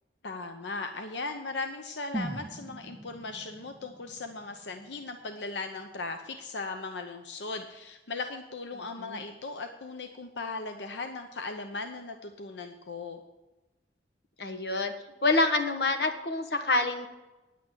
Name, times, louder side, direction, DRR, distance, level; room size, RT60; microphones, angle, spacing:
voice 1, 0.2-13.2, left 3 dB, 85° left, 6 dB, 0.8 m, -38 dB
sound 1, 2.1-6.1 6.4-6.5, right 1 dB, 20° right, 0.6 m, -42 dB
voice 2, 8.7-9.2 14.4-14.9 15.2-17.1, left 2 dB, 65° left, 6 dB, 1.4 m, -27 dB
10.0 x 8.5 x 7.5 m, 1.0 s
head